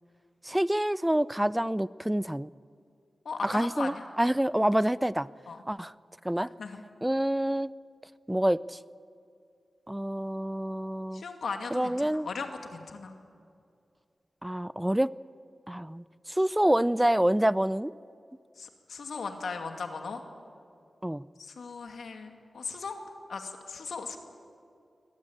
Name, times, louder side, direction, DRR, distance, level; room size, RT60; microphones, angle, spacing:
voice 1, 0.4-2.5 3.4-5.3 5.7-5.9 6.2-6.5 7.0-7.7 8.3-8.8 9.9-11.2 11.7-12.3 14.4-15.1 15.7-17.9 21.0-21.2, right 1 dB, 10° right, 18 dB, 0.5 m, -27 dB
voice 2, 3.2-4.1 5.5-5.6 6.6-6.8 11.1-13.2 18.6-20.2 21.4-23.0 23.3-24.2, left 4 dB, 90° left, 5 dB, 2.3 m, -37 dB
23.5 x 19.0 x 8.7 m, 2.4 s
wide cardioid pair, 75°, 0 cm